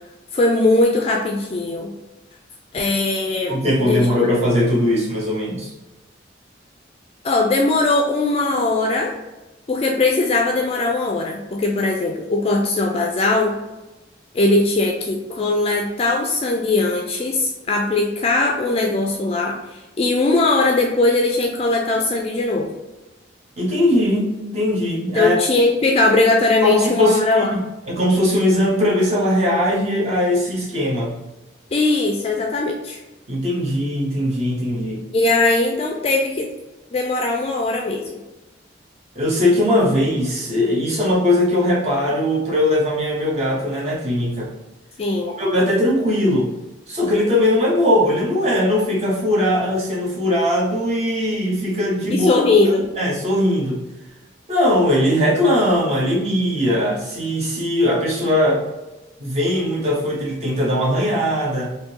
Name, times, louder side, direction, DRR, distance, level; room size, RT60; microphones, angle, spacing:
voice 1, 0.3-1.9 2.7-4.1 7.2-9.1 9.7-13.6 14.3-22.7 25.1-27.5 31.7-33.0 35.1-36.5 36.9-38.2 45.0-45.4 52.1-52.8, left 2 dB, 35° left, 1 dB, 0.3 m, -20 dB
voice 2, 3.5-5.7 23.6-25.4 26.6-31.1 33.3-35.0 39.1-44.5 45.4-46.5 46.9-52.4 53.0-53.8 54.5-58.6 59.2-61.7, left 1 dB, 35° right, -4 dB, 1.0 m, -20 dB
3.5 x 2.6 x 2.8 m, 1.1 s
head